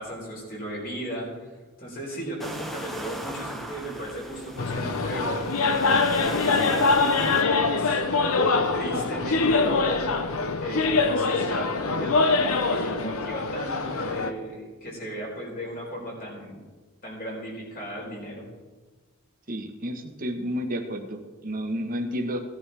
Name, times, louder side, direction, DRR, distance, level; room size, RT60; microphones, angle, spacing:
voice 1, 0.0-1.5 1.8-8.0 8.7-10.2 10.6-16.6 17.0-18.4, equal, 40° left, -3 dB, 4.5 m, -35 dB
sound 1, 2.4-7.4, right 1 dB, ahead, 0.9 m, -38 dB
sound 2, 4.6-14.3, left 4 dB, 75° left, 0.9 m, -24 dB
voice 2, 19.5-22.4, equal, 40° right, 3 dB, 1.3 m, -31 dB
17.5 x 10.0 x 3.5 m, 1.3 s
head